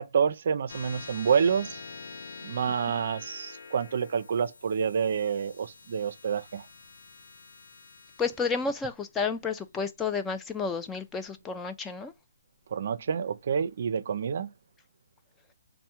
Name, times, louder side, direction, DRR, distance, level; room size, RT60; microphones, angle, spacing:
voice 1, 0.0-1.8 2.4-6.6 12.7-14.5, right 7 dB, 55° right, 0.4 m, -28 dB
sound 1, 0.7-11.5, left 4 dB, 70° left, 0.6 m, -47 dB
voice 2, 8.2-12.1, left 5 dB, 10° left, 0.3 m, -31 dB
3.4 x 2.1 x 4.3 m
hypercardioid pair, 150°, 0 cm